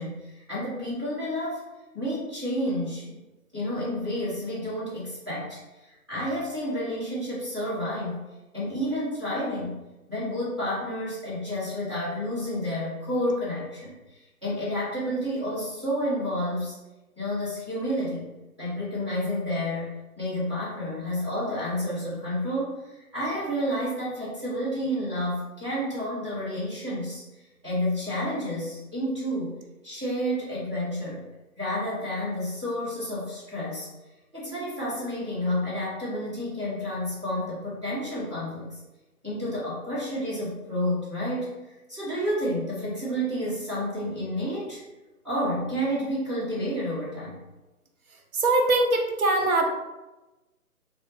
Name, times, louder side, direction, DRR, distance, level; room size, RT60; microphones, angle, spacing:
voice 1, 0.0-1.7 1.9-3.2 3.5-8.2 8.5-9.8 10.1-16.8 17.2-18.3 18.6-29.6 29.8-31.3 31.6-33.9 34.3-38.8 39.2-44.8 45.2-47.4, equal, 20° right, -11 dB, 0.9 m, -30 dB
voice 2, 48.3-49.7, right 2 dB, 65° right, 2 dB, 0.8 m, -22 dB
3.8 x 2.1 x 3.0 m, 1.1 s
hypercardioid pair, 175°, 45 cm